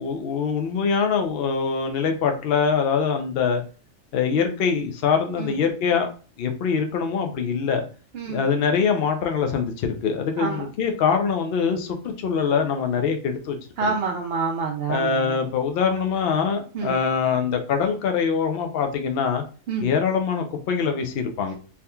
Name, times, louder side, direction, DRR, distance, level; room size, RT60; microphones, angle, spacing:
voice 1, 0.0-3.6 4.1-6.1 6.4-7.9 8.3-13.9 14.9-19.4 19.8-21.5, left 6 dB, 60° left, 5 dB, 0.7 m, -23 dB
voice 2, 13.8-15.4 16.7-16.9 19.7-19.9, right 4 dB, 65° right, 1 dB, 0.7 m, -27 dB
3.6 x 2.8 x 2.2 m, 0.37 s
omnidirectional pair, 1.3 m